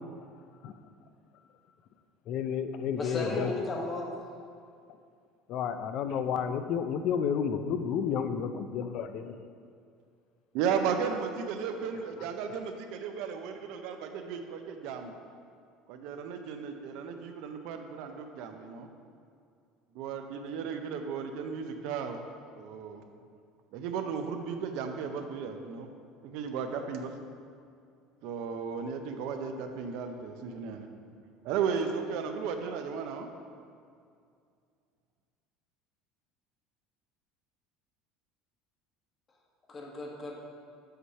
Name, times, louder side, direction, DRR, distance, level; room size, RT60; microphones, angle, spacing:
voice 1, 2.3-3.5 5.5-9.3, left 7 dB, 50° left, 9 dB, 0.4 m, -31 dB
voice 2, 3.0-4.0 39.7-40.5, left 2 dB, 20° left, -1 dB, 1.0 m, -35 dB
voice 3, 10.5-15.2 15.9-18.9 19.9-22.2 22.5-23.0 23.7-25.9 26.2-27.1 28.2-30.9 31.4-33.3, right 6 dB, 65° right, 6 dB, 0.6 m, -35 dB
7.8 x 3.2 x 5.5 m, 2.3 s
cardioid pair, 155°, 0 cm